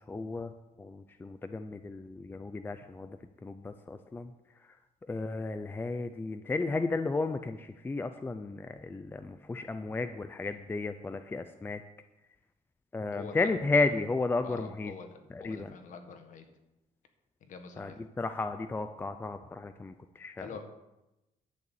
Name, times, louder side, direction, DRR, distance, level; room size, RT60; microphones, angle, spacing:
voice 1, 0.1-0.5 0.8-3.1 3.4-4.3 5.1-11.8 12.9-14.9 15.3-15.7 17.8-17.9 18.2-20.5, left 3 dB, 15° left, 9 dB, 0.5 m, -33 dB
voice 2, 13.1-13.5 14.4-16.4 17.4-18.0 20.4-20.6, left 5 dB, 60° left, 6 dB, 1.8 m, -45 dB
11.5 x 6.8 x 8.5 m, 0.96 s
cardioid pair, 160°, 15 cm